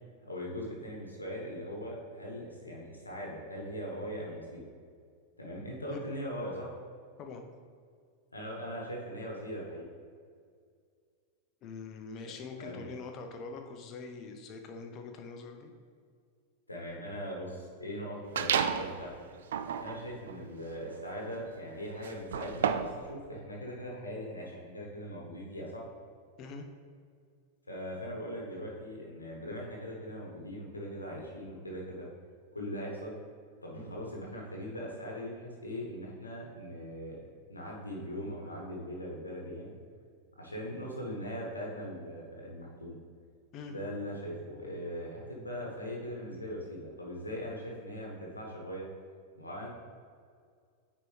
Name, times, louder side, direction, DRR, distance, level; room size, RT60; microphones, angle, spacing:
voice 1, 0.3-4.7 5.4-6.7 8.3-9.8 12.6-12.8 16.7-19.1 19.8-25.8 27.7-32.1 32.5-33.1 33.6-39.7 40.4-43.0 43.7-48.9 49.3-49.7, equal, 80° left, -2 dB, 1.1 m, -40 dB
voice 2, 11.6-15.7 26.4-26.7 43.5-43.7, left 4 dB, 35° left, 5 dB, 0.7 m, -44 dB
sound 1, 18.3-18.9 19.4-23.0, right 8 dB, 60° right, 0.3 m, -32 dB
9.3 x 4.2 x 3.2 m, 2.1 s
figure-of-eight pair, 90°, 0 cm